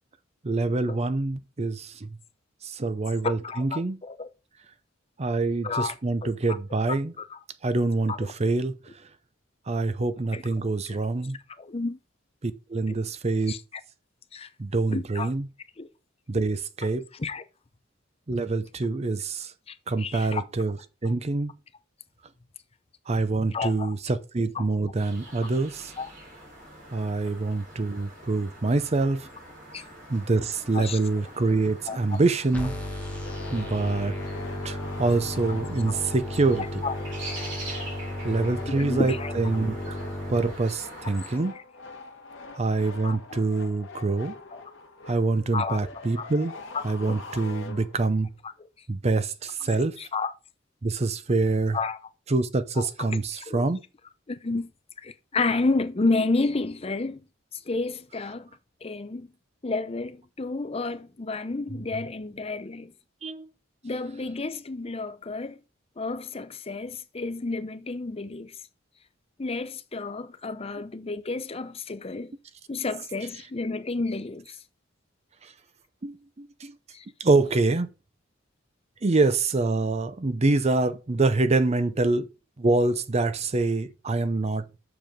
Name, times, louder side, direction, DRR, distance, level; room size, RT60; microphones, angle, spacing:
voice 1, 0.4-2.1 2.6-4.0 5.2-7.1 7.6-8.7 9.7-11.4 12.4-13.5 14.6-15.5 16.3-17.0 18.3-19.5 19.9-20.8 21.0-21.5 23.1-25.9 26.9-29.3 30.1-32.7 33.5-34.1 34.6-36.7 38.2-40.0 40.3-41.6 42.6-44.4 45.1-46.5 46.8-48.3 48.9-49.9 50.8-51.8 52.3-53.8 63.2-63.5 70.7-70.8 75.4-75.5 76.0-76.7 77.2-77.9 79.0-82.3 82.6-84.6, right 3 dB, 35° right, 0.6 m, -25 dB
voice 2, 3.2-4.3 5.6-5.9 6.2-6.6 6.9-7.0 7.3-7.4 8.1-8.2 10.3-10.4 11.6-12.0 12.9-13.0 13.5-13.6 14.3-14.5 14.9-15.3 15.8-15.9 17.1-17.4 19.7-20.4 21.0-21.1 23.5-23.9 24.5-24.6 26.0-26.1 29.7-29.8 30.7-31.3 31.9-32.2 36.8-36.9 38.7-39.3 43.0-43.2 44.5-44.6 45.5-45.9 46.2-46.3 47.0-47.2 48.6-48.7 50.0-50.3 51.7-52.0 52.8-52.9 53.5-53.6 54.3-54.7 55.0-57.2 57.7-58.5 58.8-59.3 59.6-62.9 63.8-65.6 66.0-68.6 69.4-72.3 72.7-74.6 76.9-77.1, left 3 dB, 30° left, 0.6 m, -31 dB
sound 1, 25.0-41.4, right 1 dB, 65° right, 4.0 m, -44 dB
sound 2, 32.5-40.5, left 1 dB, 10° left, 1.7 m, -34 dB
sound 3, 33.2-48.2, left 3 dB, 70° left, 1.8 m, -44 dB
7.8 x 6.9 x 3.7 m
head